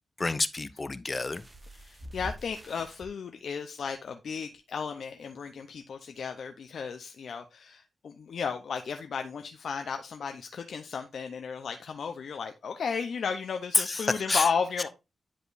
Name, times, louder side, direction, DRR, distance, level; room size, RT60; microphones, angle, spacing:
voice 1, 0.2-1.5 13.7-14.5, left 3 dB, 30° left, 0.5 m, -28 dB
sound 1, 1.3-3.1 4.0-4.1 4.5-4.6, equal, 20° right, 1.3 m, -44 dB
voice 2, 1.8-14.9, left 6 dB, 70° left, 0.7 m, -34 dB
10.0 x 5.0 x 2.5 m
wide cardioid pair, 100°, 0 cm